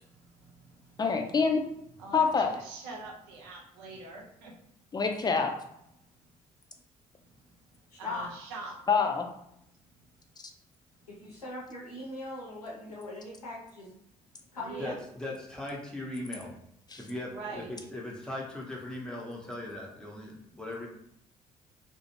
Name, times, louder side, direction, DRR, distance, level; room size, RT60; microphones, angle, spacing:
voice 1, 0.0-1.0 2.0-4.6 8.0-8.9 14.6-15.0 17.3-17.7, right 3 dB, 65° right, -1 dB, 0.6 m, -43 dB
voice 2, 1.0-1.6 2.1-2.5 4.9-5.5 8.9-9.3 16.9-17.0, left 5 dB, 20° left, 4 dB, 0.5 m, -25 dB
voice 3, 7.9-8.3 11.1-14.0 14.5-14.9, left 2 dB, 85° left, -4 dB, 0.6 m, -40 dB
voice 4, 14.8-16.5 17.0-20.9, left 1 dB, 5° left, -3 dB, 0.8 m, -39 dB
2.4 x 2.1 x 3.0 m, 0.76 s
figure-of-eight pair, 45°, 19 cm